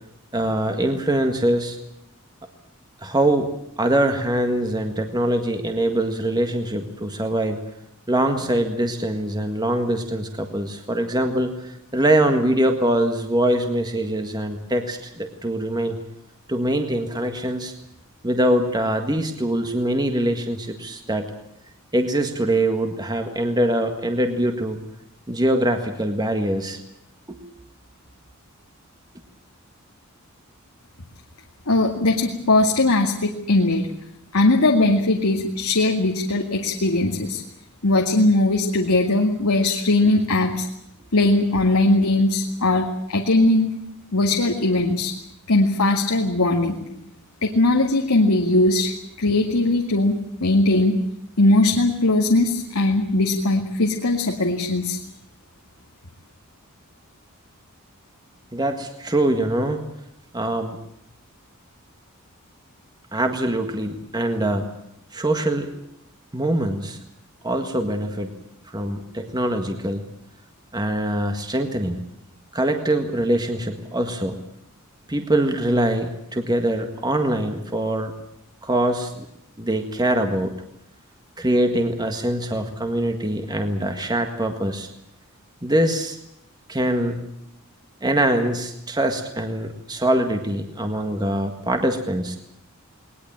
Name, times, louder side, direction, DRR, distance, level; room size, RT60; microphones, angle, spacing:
voice 1, 0.3-1.8 3.0-3.5 3.8-7.7 8.1-16.0 16.5-17.7 18.2-21.3 21.9-24.8 25.3-26.8 27.3-27.4 58.5-59.8 60.3-60.8 63.1-64.7 65.1-65.7 66.3-67.0 67.4-68.3 68.7-70.0 70.7-72.0 72.5-74.4 75.1-78.1 78.6-79.3 79.6-80.5 81.4-84.9 85.6-86.2 86.7-87.2 88.0-92.4, right 1 dB, 20° right, 6 dB, 1.8 m, -23 dB
voice 2, 31.7-33.9 34.3-37.4 37.8-40.7 41.1-43.7 44.1-45.1 45.5-46.8 47.4-51.0 51.4-55.0, left 2 dB, 85° left, 1 dB, 2.2 m, -19 dB
20.5 x 20.0 x 8.9 m, 0.77 s
head